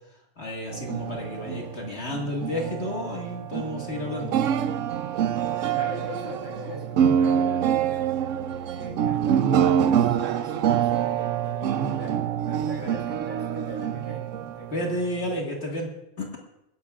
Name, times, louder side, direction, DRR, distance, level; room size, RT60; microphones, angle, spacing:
voice 1, 0.4-4.4 14.7-15.9 16.2-16.4, left 1 dB, 55° left, -1 dB, 2.1 m, -31 dB
sound 1, 0.7-15.4, right 9 dB, 75° right, 1.0 m, -26 dB
voice 2, 5.7-7.6 8.3-14.3 14.6-14.9, equal, 35° right, -3 dB, 6.4 m, -40 dB
27.5 x 11.0 x 2.4 m, 0.88 s
omnidirectional pair, 1.4 m